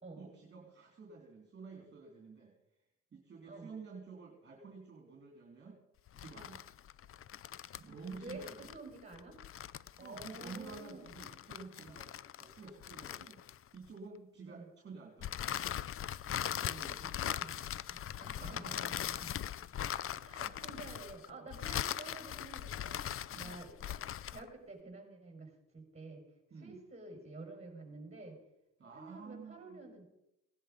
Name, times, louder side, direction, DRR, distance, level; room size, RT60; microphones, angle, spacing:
voice 1, 0.2-2.9 3.1-5.8 6.2-6.7 7.8-8.7 10.0-12.1 12.4-13.4 13.7-15.5 16.3-17.8 18.3-18.9 20.0-20.9 23.3-23.6 26.5-26.8 28.8-29.9, right 4 dB, 35° right, 0 dB, 3.4 m, -51 dB
sound 1, 6.1-13.9 15.2-24.5, left 10 dB, 45° left, 0.5 m, -40 dB
voice 2, 8.2-9.4 10.0-11.1 14.5-14.6 17.3-17.6 17.9-19.2 20.2-23.0 23.4-24.0 24.3-26.2 26.6-28.4 28.9-30.0, right 3 dB, 20° right, 4 dB, 5.8 m, -50 dB
18.0 x 11.0 x 5.2 m, 0.86 s
cardioid pair, 90°, 30 cm